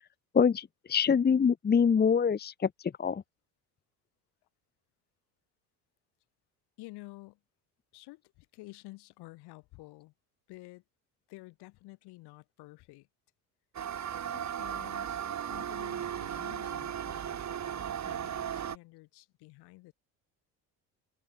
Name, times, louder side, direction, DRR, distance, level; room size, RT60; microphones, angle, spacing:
voice 1, 0.3-2.7 3.0-3.2, left 6 dB, 25° left, 1.0 m, -25 dB
voice 2, 6.8-7.4 7.9-10.1 10.5-10.8 11.3-13.1 14.3-19.9, left 21 dB, 75° left, 6.4 m, -51 dB
sound 1, 13.7-18.8, right 9 dB, 45° right, 2.7 m, -36 dB
open air
supercardioid pair, 90°, 39 cm